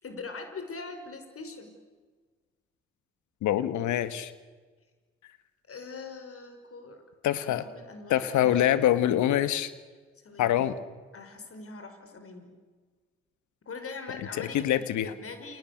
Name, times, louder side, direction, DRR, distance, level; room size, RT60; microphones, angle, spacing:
voice 1, 0.0-1.8 5.7-7.0 7.5-8.8 10.2-10.7 11.1-12.5 13.7-15.6, left 4 dB, 45° left, 7 dB, 5.5 m, -42 dB
voice 2, 3.4-4.3 7.2-7.7 8.1-9.7 10.4-10.8 14.4-15.1, left 12 dB, 70° left, 13 dB, 1.8 m, -25 dB
29.5 x 29.0 x 6.7 m, 1.4 s
hypercardioid pair, 45°, 31 cm